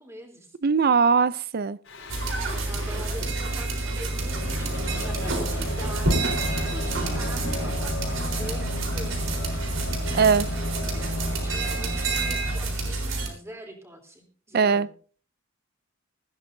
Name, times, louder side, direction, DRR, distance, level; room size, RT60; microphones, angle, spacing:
voice 1, 0.0-0.6 2.5-9.3 11.2-14.9, right 1 dB, 15° right, 3 dB, 3.5 m, -43 dB
voice 2, 0.6-1.8 10.1-10.5 14.5-14.9, right 5 dB, 50° right, 18 dB, 0.5 m, -20 dB
Singing, 1.9-13.2, left 1 dB, 75° left, 5.3 m, -36 dB
sound 1, 2.1-13.3, right 2 dB, 80° right, 4.1 m, -28 dB
Waves surf / Splash splatter / Trickle dribble, 6.0-11.8, left 2 dB, 60° left, 0.9 m, -40 dB
19.5 x 15.0 x 2.7 m, 0.42 s
head